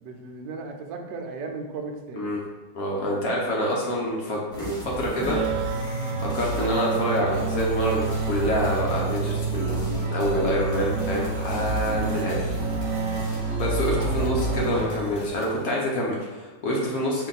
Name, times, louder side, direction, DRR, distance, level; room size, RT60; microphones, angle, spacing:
voice 1, 0.0-2.3 13.9-14.8, right 3 dB, 70° right, 3 dB, 1.2 m, -36 dB
voice 2, 2.7-5.4 6.2-12.5 13.6-17.3, equal, 60° left, -3 dB, 1.0 m, -26 dB
sound 1, 4.5-14.3, right 3 dB, 5° left, 0.4 m, -36 dB
sound 2, 5.2-15.4, right 3 dB, 90° right, 0.7 m, -29 dB
sound 3, 7.3-15.7, left 2 dB, 80° left, 1.4 m, -39 dB
5.0 x 2.6 x 3.9 m, 1.2 s
omnidirectional pair, 2.2 m